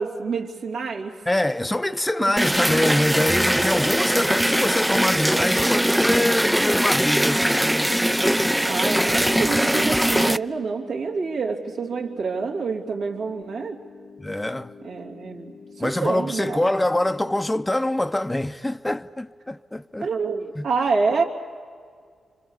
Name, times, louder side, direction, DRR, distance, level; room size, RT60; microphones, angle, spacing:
voice 1, 0.0-1.2 2.2-2.4 8.0-8.3 8.6-13.8 14.8-16.7 20.0-21.2, right 4 dB, 80° right, 3.1 m, -27 dB
voice 2, 1.3-8.0 8.4-8.6 14.2-14.7 15.8-20.1 20.6-20.7, left 1 dB, 15° left, 0.9 m, -25 dB
sound 1, 2.4-10.4, equal, 5° right, 0.6 m, -21 dB
sound 2, 7.6-17.6, left 5 dB, 60° left, 1.5 m, -46 dB
29.5 x 25.5 x 7.4 m
supercardioid pair, 45°, 0 cm